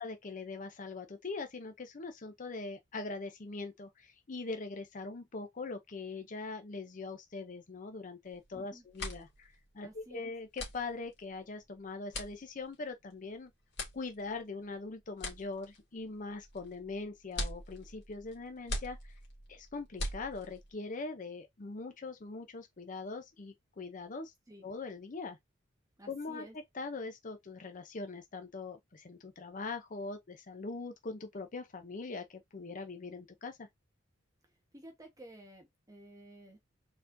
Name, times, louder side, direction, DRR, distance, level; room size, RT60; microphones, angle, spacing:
voice 1, 0.0-13.5 13.9-19.2 19.5-24.3 24.6-25.4 26.1-26.5 26.7-33.7, left 3 dB, 40° left, 0.6 m, -42 dB
sound 1, 8.3-8.5 8.8-20.7, left 1 dB, 60° left, 2.3 m, -43 dB
voice 2, 8.5-8.8 9.8-10.3 24.5-24.7 26.0-26.6 34.7-36.6, right 1 dB, 20° right, 1.2 m, -53 dB
4.3 x 4.2 x 2.6 m
head